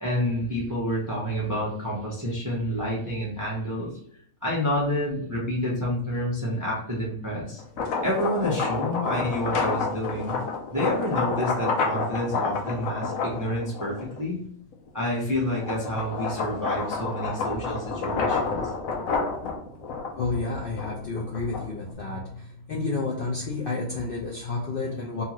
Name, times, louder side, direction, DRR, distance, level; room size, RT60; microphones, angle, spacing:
voice 1, 0.0-3.9 4.4-7.6 8.0-10.4 10.7-14.4 14.9-18.6, equal, 25° right, -5 dB, 0.5 m, -28 dB
sound 1, 7.6-14.2 14.7-21.9, left 4 dB, 85° left, 1.1 m, -29 dB
voice 2, 20.1-25.2, left 3 dB, 60° left, -3 dB, 0.6 m, -30 dB
2.7 x 2.4 x 2.9 m, 0.66 s
omnidirectional pair, 1.4 m